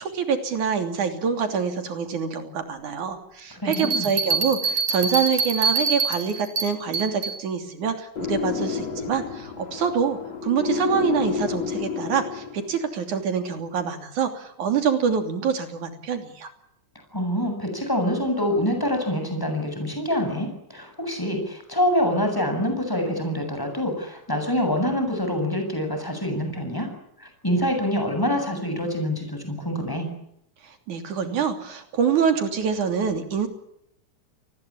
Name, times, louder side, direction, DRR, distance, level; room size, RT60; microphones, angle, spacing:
voice 1, 0.0-16.5 30.6-33.5, right 6 dB, 85° right, 7 dB, 4.5 m, -26 dB
voice 2, 3.5-4.1 17.1-26.9 27.2-30.1, equal, 5° left, 5 dB, 7.6 m, -25 dB
sound 1, 3.7-7.4, right 5 dB, 65° right, 4.1 m, -25 dB
sound 2, 8.2-12.8, left 6 dB, 60° left, 3.7 m, -29 dB
28.5 x 20.0 x 8.6 m, 0.78 s
omnidirectional pair, 3.4 m